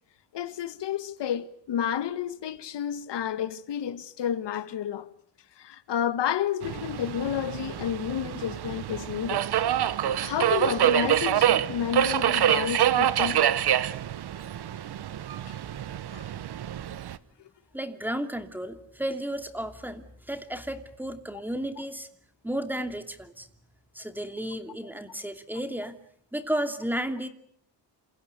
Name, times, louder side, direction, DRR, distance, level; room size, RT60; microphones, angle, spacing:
voice 1, 0.3-5.1 5.6-9.5 10.1-13.5 15.5-15.6 16.1-16.3, left 9 dB, 65° left, 2.0 m, -31 dB
Subway metro underground, 6.6-17.2, right 11 dB, 60° right, 1.3 m, -26 dB
voice 2, 17.7-22.1 22.4-23.5 23.9-26.0 26.3-27.3, right 1 dB, 5° right, 2.7 m, -33 dB
29.0 x 27.5 x 6.9 m
cardioid pair, 140°, 44 cm